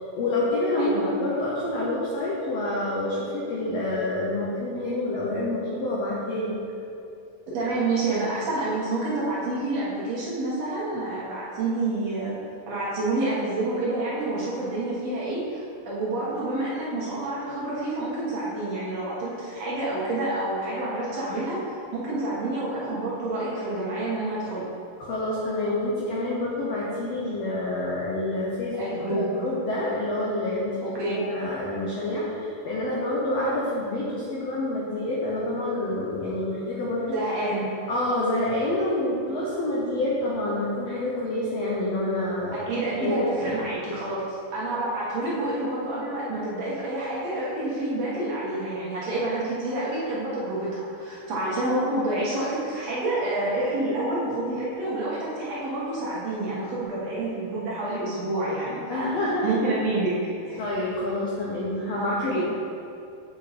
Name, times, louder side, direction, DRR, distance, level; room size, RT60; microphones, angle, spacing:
voice 1, 0.1-6.5 25.0-37.2 37.9-42.7 43.0-43.5 58.9-59.5 60.6-62.4, left 1 dB, 80° left, -5 dB, 1.4 m, -27 dB
voice 2, 0.8-1.2 7.5-12.3 12.7-24.7 28.8-29.3 30.9-31.3 37.1-37.7 42.5-60.2 60.5-60.6 62.0-62.4, right 2 dB, 55° right, -8 dB, 2.3 m, -28 dB
8.1 x 5.6 x 4.2 m, 2.7 s
omnidirectional pair, 4.2 m